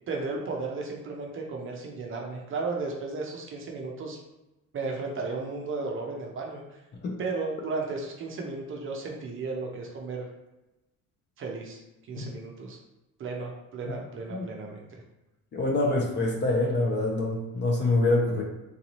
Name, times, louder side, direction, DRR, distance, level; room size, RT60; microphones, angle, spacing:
voice 1, 0.1-4.2 4.7-6.8 7.2-10.3 11.4-11.8 12.1-12.8 13.2-14.9, right 3 dB, 35° right, 0 dB, 0.6 m, -34 dB
voice 2, 15.5-18.4, left 2 dB, 30° left, 0 dB, 0.6 m, -25 dB
3.9 x 2.7 x 3.0 m, 0.99 s
cardioid pair, 175°, 35 cm